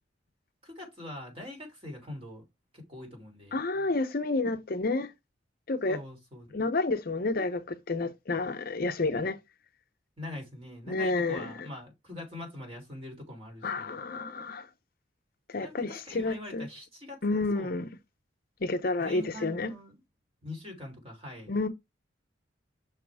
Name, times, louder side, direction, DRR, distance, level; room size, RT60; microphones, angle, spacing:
voice 1, 0.6-2.4 2.7-3.6 5.9-6.5 10.2-14.0 15.6-17.8 19.0-19.9 20.4-21.6, left 1 dB, 30° right, 3.3 m, -43 dB
voice 2, 3.5-5.1 5.7-6.0 6.5-9.4 10.9-11.5 13.6-14.7 15.5-16.7 17.2-17.9 18.6-19.7 21.5-21.7, left 3 dB, 50° left, 0.7 m, -30 dB
6.2 x 3.6 x 4.7 m
head